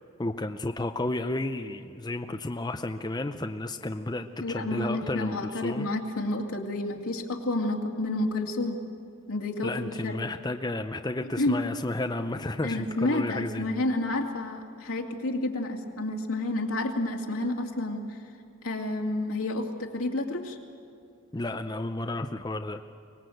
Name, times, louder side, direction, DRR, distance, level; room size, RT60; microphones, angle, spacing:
voice 1, 0.2-5.9 9.6-13.7 21.3-22.8, left 2 dB, 20° left, 6 dB, 0.6 m, -32 dB
voice 2, 4.4-8.8 9.3-10.2 11.2-11.6 12.6-18.2 18.6-20.6, left 2 dB, 80° left, 1 dB, 2.5 m, -30 dB
24.0 x 19.5 x 7.9 m, 2.5 s
head